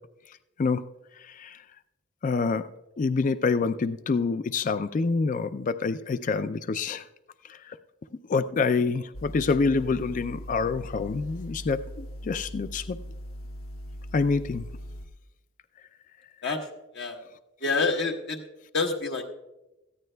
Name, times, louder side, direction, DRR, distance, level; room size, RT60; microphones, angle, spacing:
voice 1, 1.2-1.6 2.2-2.7 3.0-7.0 7.5-7.8 8.3-13.0 14.1-14.7, left 4 dB, 40° left, 13 dB, 0.3 m, -27 dB
sound 1, 9.1-15.1, equal, 90° left, 0.9 m, -40 dB
voice 2, 17.6-18.4 18.7-19.3, left 4 dB, 60° left, 1 dB, 1.1 m, -27 dB
18.5 x 14.5 x 2.2 m, 0.98 s
head